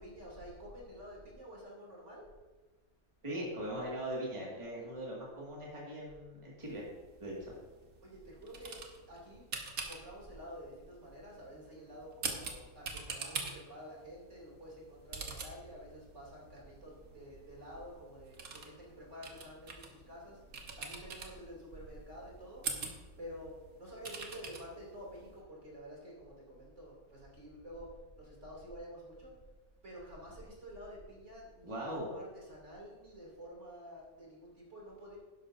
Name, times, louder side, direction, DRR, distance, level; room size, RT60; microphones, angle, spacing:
voice 1, 0.0-2.2 8.0-9.5 9.9-20.4 20.8-22.7 23.2-29.4 29.8-35.2, equal, 55° right, -4 dB, 3.2 m, -49 dB
voice 2, 3.2-6.8 7.2-7.5 31.6-32.1, right 1 dB, 20° right, -5 dB, 2.1 m, -40 dB
sound 1, 6.6-25.4, right 4 dB, 75° right, 1.6 m, -46 dB
12.0 x 10.5 x 2.6 m, 1.2 s
omnidirectional pair, 1.5 m